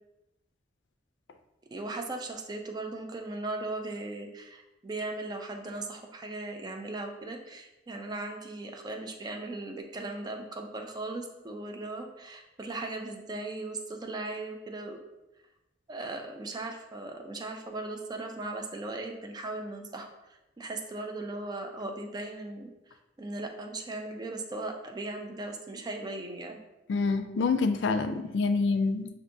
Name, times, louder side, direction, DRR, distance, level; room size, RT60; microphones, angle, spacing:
voice 1, 1.7-15.0 15.9-20.1 20.6-22.7 23.2-26.6, right 2 dB, 25° right, 3 dB, 0.4 m, -38 dB
voice 2, 26.9-29.1, left 4 dB, 75° left, 8 dB, 0.4 m, -26 dB
5.7 x 2.6 x 2.6 m, 0.98 s
head